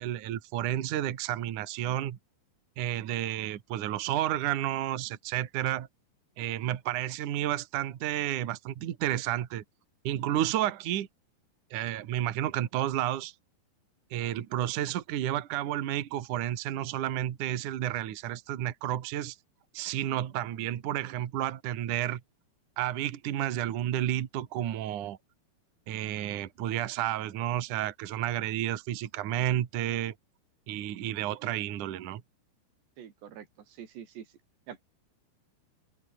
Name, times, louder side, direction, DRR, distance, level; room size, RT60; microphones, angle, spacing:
voice 1, 0.0-2.2 2.8-5.9 6.4-9.6 10.0-11.1 11.7-13.3 14.1-19.4 19.7-22.2 22.8-25.2 25.9-30.1 30.7-32.2, right 12 dB, 55° right, 2.7 m, -31 dB
voice 2, 33.0-34.3 34.7-34.8, right 9 dB, 85° right, 5.0 m, -45 dB
omnidirectional pair, 4.8 m